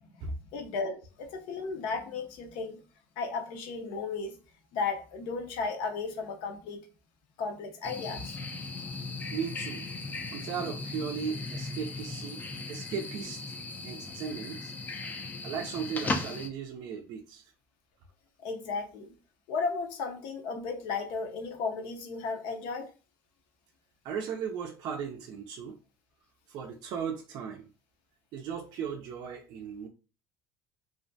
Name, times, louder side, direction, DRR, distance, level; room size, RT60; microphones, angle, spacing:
voice 1, 0.5-2.8 3.2-4.3 4.7-6.8 7.4-8.4 18.4-19.1 19.5-22.9, left 4 dB, 75° left, 0.6 m, -34 dB
sound 1, 7.8-16.5, left 3 dB, 20° left, 0.3 m, -37 dB
voice 2, 9.3-9.9 10.3-13.4 13.8-14.7 15.4-17.5 24.0-25.8 26.5-27.7 28.3-29.9, right 7 dB, 55° right, 0.4 m, -37 dB
2.4 x 2.1 x 2.6 m
cardioid pair, 135°, 9 cm